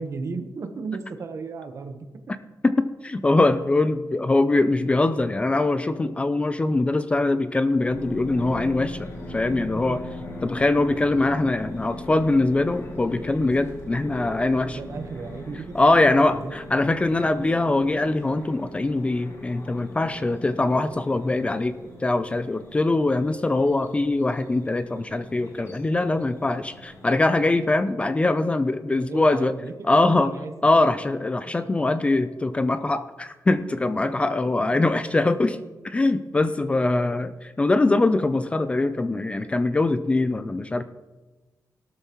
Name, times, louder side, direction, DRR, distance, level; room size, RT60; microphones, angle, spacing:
voice 1, 0.0-2.1 9.7-10.0 14.6-16.9 28.7-30.5 34.2-34.3 34.6-34.7 37.2-37.3, right 4 dB, 45° right, 7 dB, 1.0 m, -35 dB
voice 2, 2.6-10.0 10.4-14.8 15.7-21.7 22.0-29.5 29.8-30.3 30.6-35.6 35.8-40.8, left 2 dB, 20° left, 11 dB, 0.4 m, -22 dB
sound 1, 7.9-27.6, left 1 dB, 45° left, 2.7 m, -40 dB
17.0 x 12.5 x 3.0 m, 1.2 s
wide cardioid pair, 180°, 7 cm